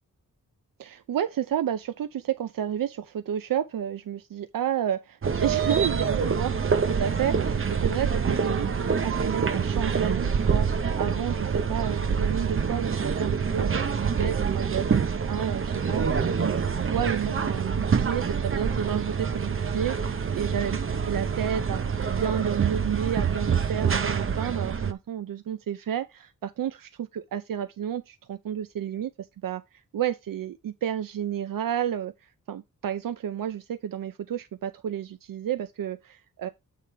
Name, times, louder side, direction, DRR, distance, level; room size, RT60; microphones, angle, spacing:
voice 1, 0.8-20.8 21.1-29.1 29.4-29.6 29.9-32.1 32.5-36.5, right 9 dB, 80° right, 0.6 m, -31 dB
sound 1, 5.2-24.9, right 6 dB, 40° right, 0.7 m, -26 dB
8.4 x 3.7 x 4.4 m
wide cardioid pair, 160°, 33 cm